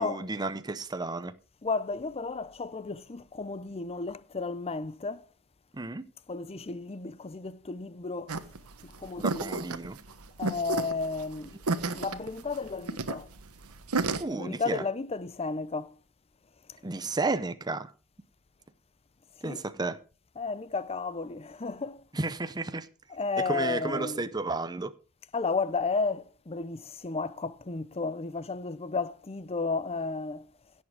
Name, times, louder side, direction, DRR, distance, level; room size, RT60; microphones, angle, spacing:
voice 1, 0.0-1.3 5.7-6.0 9.2-10.0 14.2-14.8 16.8-17.9 19.4-20.0 22.1-22.9 23.4-24.9, right 3 dB, 20° right, 0.6 m, -32 dB
voice 2, 1.6-5.3 6.3-8.4 8.8-9.6 10.4-11.6 11.9-13.3 14.3-15.9 19.4-19.6 20.4-22.0 23.1-24.2 25.3-30.5, left 4 dB, 25° left, 0.6 m, -33 dB
sound 1, 8.3-14.2, right 3 dB, 80° right, 1.2 m, -32 dB
17.0 x 7.4 x 4.8 m
head